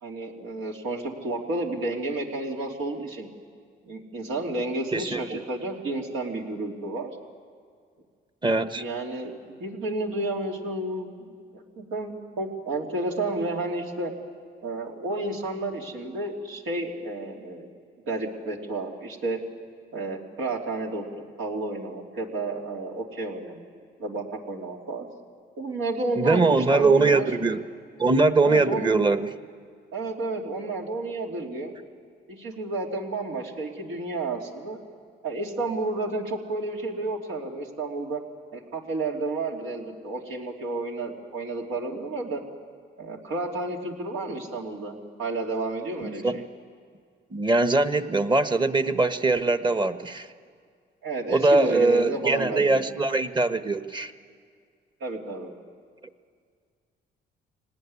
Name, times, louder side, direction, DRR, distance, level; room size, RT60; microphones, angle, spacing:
voice 1, 0.0-3.3 3.8-7.1 8.8-14.1 14.6-17.7 18.0-19.4 19.9-23.7 24.0-25.1 25.6-27.3 28.4-29.0 29.9-31.7 32.3-34.8 35.2-38.2 38.5-42.4 43.0-46.4 51.0-52.8 55.0-55.5, right 2 dB, 80° right, 0 dB, 3.1 m, -31 dB
voice 2, 4.9-5.4 8.4-8.8 26.2-27.6 28.0-29.3 46.0-46.4 47.3-50.3 51.3-54.1, right 3 dB, 25° right, 10 dB, 1.1 m, -22 dB
25.0 x 18.5 x 9.7 m, 2.1 s
cardioid pair, 90°, 20 cm